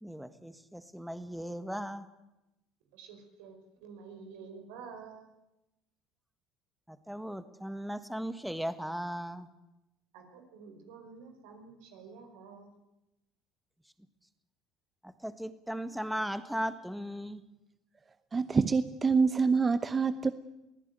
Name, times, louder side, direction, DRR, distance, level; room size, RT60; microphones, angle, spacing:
voice 1, 0.0-2.1 6.9-9.5 15.0-17.4, equal, ahead, 1.6 m, -37 dB
voice 2, 2.9-5.3 10.1-12.7, right 5 dB, 80° right, 4.9 m, -49 dB
voice 3, 18.3-20.3, right 5 dB, 30° right, 0.9 m, -26 dB
22.5 x 16.0 x 9.2 m
supercardioid pair, 80°, 0 cm